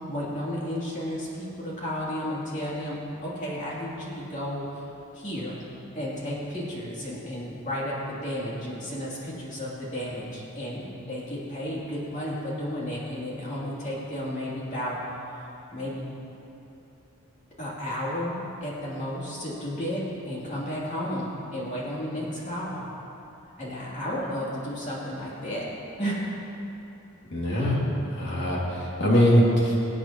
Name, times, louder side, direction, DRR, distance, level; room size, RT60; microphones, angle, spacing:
voice 1, 0.1-4.8 5.1-5.6 5.9-16.1 17.6-22.9 23.6-25.7 26.0-26.2, equal, 35° left, -6 dB, 2.8 m, -33 dB
voice 2, 27.3-27.8 28.1-29.8, equal, 50° left, -5 dB, 2.3 m, -22 dB
24.0 x 8.3 x 2.9 m, 2.9 s
head